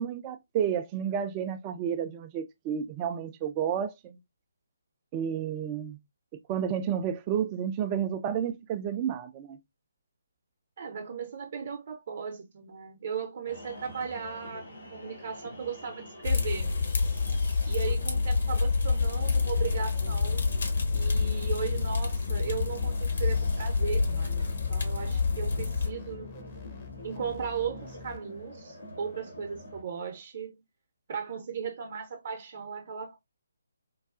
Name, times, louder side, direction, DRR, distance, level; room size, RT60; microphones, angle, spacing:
voice 1, 0.0-4.2 5.1-6.0 6.5-9.6, right 8 dB, 20° right, 0.4 m, -31 dB
voice 2, 10.8-16.8 17.6-20.5 20.9-26.3 27.0-30.6 31.1-33.2, right 7 dB, 45° right, 0.7 m, -37 dB
sound 1, 13.5-29.8, left 1 dB, 80° left, 2.6 m, -47 dB
sound 2, 16.2-25.9, left 4 dB, 55° left, 1.0 m, -27 dB
sound 3, 19.6-28.2, left 8 dB, 30° left, 0.7 m, -46 dB
4.6 x 2.3 x 2.4 m
figure-of-eight pair, 140°, 0 cm